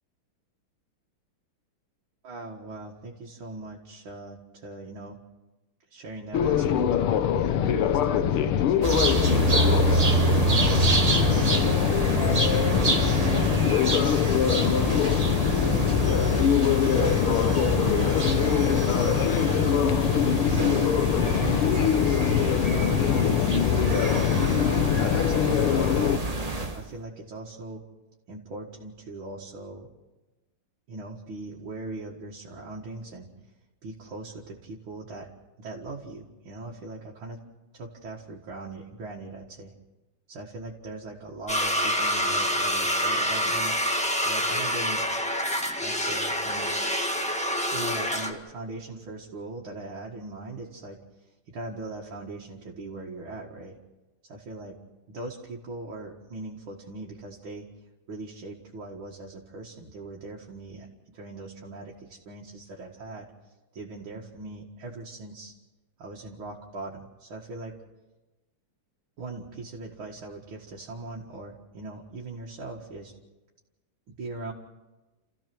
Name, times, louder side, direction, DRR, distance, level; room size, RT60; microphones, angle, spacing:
voice 1, 2.2-5.2 5.9-11.9 12.3-13.7 14.4-15.4 16.8-19.9 20.4-26.2 26.7-27.8 28.3-29.9 30.9-33.3 33.8-35.3 35.6-37.4 37.7-39.7 40.3-43.8 44.2-45.0 45.8-46.8 47.7-51.0 51.5-53.8 54.2-54.8 55.1-57.7 58.1-60.9 61.1-63.3 63.7-65.5 66.0-67.8 69.2-73.1 74.1-74.5, right 2 dB, 65° right, -3 dB, 2.7 m, -40 dB
sound 1, 6.3-26.2, left 9 dB, 80° left, 1.8 m, -23 dB
sound 2, 8.8-26.8, right 2 dB, 20° right, 1.2 m, -27 dB
sound 3, 41.5-48.3, equal, 5° left, 1.3 m, -27 dB
29.5 x 15.5 x 6.2 m, 1.1 s
omnidirectional pair, 2.4 m